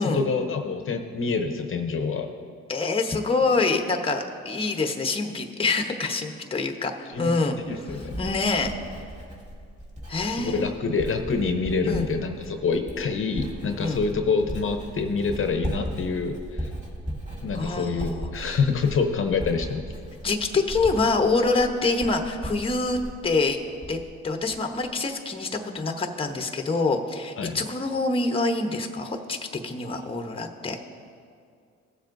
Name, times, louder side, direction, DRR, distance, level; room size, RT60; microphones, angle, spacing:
voice 1, 0.0-2.3 7.1-7.3 7.7-8.2 10.3-16.7 17.4-19.8 27.4-27.6, left 4 dB, 45° left, 5 dB, 0.8 m, -26 dB
voice 2, 2.7-7.6 7.9-8.7 10.1-10.7 11.9-12.1 13.8-14.0 17.5-18.6 20.2-23.6 23.9-24.0 24.2-25.5 25.7-29.4 29.6-30.8, left 3 dB, 20° left, 5 dB, 0.9 m, -26 dB
Writing, 7.1-24.2 24.5-24.9, right 1 dB, 25° right, 2.3 m, -37 dB
18.0 x 7.2 x 2.6 m, 2.3 s
cardioid pair, 90°, 30 cm